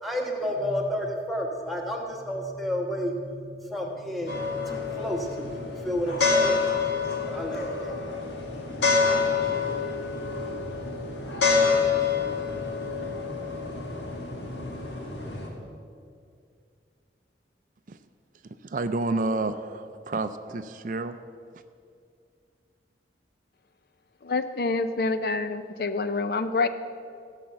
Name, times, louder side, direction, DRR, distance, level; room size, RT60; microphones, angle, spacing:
voice 1, 0.0-8.3, equal, ahead, 0 dB, 1.2 m, -31 dB
sound 1, 4.3-15.5, left 4 dB, 85° left, 2.0 m, -27 dB
voice 2, 18.6-21.2, right 2 dB, 45° right, 10 dB, 0.4 m, -29 dB
voice 3, 24.2-26.7, left 3 dB, 55° left, 10 dB, 0.5 m, -27 dB
15.5 x 5.7 x 7.6 m, 2.3 s
head